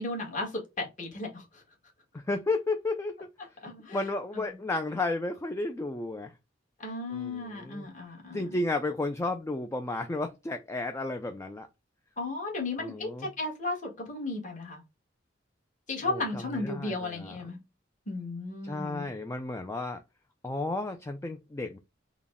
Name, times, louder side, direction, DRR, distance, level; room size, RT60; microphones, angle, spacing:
voice 1, 0.0-1.6 3.6-4.0 4.3-4.6 6.8-8.6 12.2-14.8 15.9-17.6 18.1-19.1, left 2 dB, 40° left, 1.5 m, -35 dB
voice 2, 2.1-3.6 3.9-6.3 7.1-7.9 8.3-11.7 12.8-13.3 16.1-17.4 18.6-20.0 20.4-21.8, left 2 dB, 15° left, 0.3 m, -33 dB
3.9 x 2.2 x 3.5 m
head